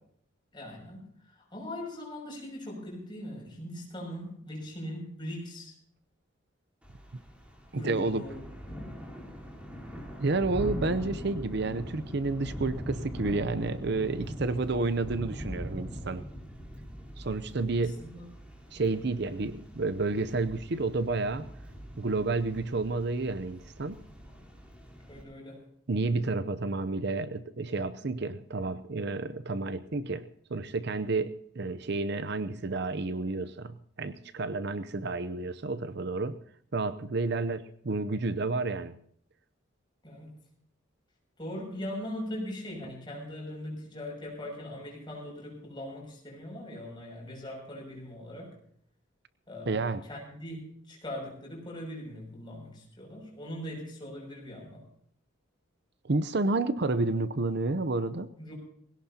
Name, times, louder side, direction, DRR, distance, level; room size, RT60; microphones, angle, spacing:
voice 1, 0.5-5.7 7.7-8.4 8.7-8.8 18.0-18.3 25.1-25.6 40.0-40.3 41.4-48.6 49.5-54.8 58.4-58.5, left 1 dB, 20° left, -1 dB, 6.6 m, -40 dB
Thunder / Rain, 6.8-25.2, equal, 5° right, 3.8 m, -42 dB
voice 2, 7.8-8.2 10.2-16.2 17.2-18.0 18.7-21.4 22.0-24.0 25.9-36.3 36.7-39.0 49.7-50.0 56.0-58.3, right 3 dB, 55° right, 12 dB, 0.7 m, -30 dB
21.0 x 17.5 x 2.9 m, 0.64 s
head